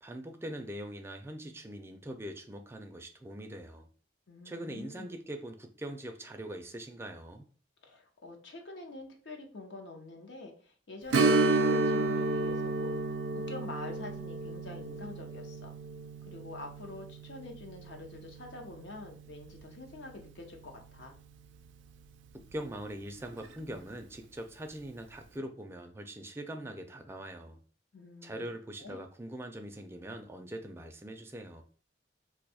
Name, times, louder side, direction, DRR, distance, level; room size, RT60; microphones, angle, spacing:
voice 1, 0.0-3.9 4.4-7.4 22.3-27.6 28.2-31.6, right 1 dB, 15° right, 5 dB, 0.4 m, -42 dB
voice 2, 4.3-5.2 7.8-13.0 13.3-15.7 16.2-21.2 27.9-28.5 28.8-29.0, left 2 dB, 70° left, 3 dB, 0.7 m, -46 dB
Strum, 11.1-20.3 20.6-20.7 23.3-23.4 23.9-24.0, right 2 dB, 85° right, 0.4 m, -32 dB
2.6 x 2.3 x 4.0 m, 0.43 s
head